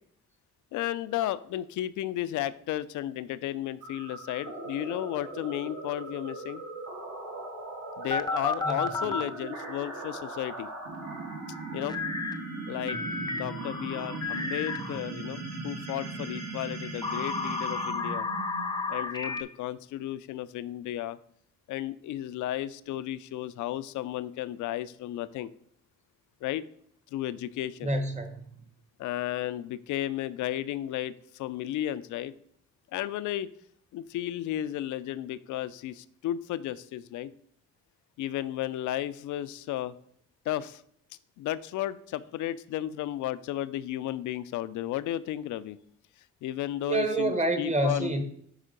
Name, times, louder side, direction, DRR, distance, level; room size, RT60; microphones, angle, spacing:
voice 1, 0.7-6.6 8.0-10.7 11.7-12.0 12.7-13.0 13.3-18.3 18.9-21.2 21.7-25.5 26.4-26.7 27.1-27.9 29.0-32.3 32.9-33.5 33.9-37.3 38.2-39.9 40.5-40.8 41.4-45.8 46.4-48.1, left 13 dB, 75° left, 15 dB, 0.4 m, -33 dB
sound 1, 3.8-18.9, right 3 dB, 60° right, 1.7 m, -39 dB
sound 2, 8.1-9.3 11.9-12.4 12.9-15.0 15.9-19.4, left 3 dB, 15° left, 0.5 m, -33 dB
voice 2, 27.8-28.5 46.9-48.2, right 2 dB, 25° right, 8 dB, 1.0 m, -28 dB
5.6 x 3.5 x 5.1 m, 0.67 s
cardioid pair, 90°, 30 cm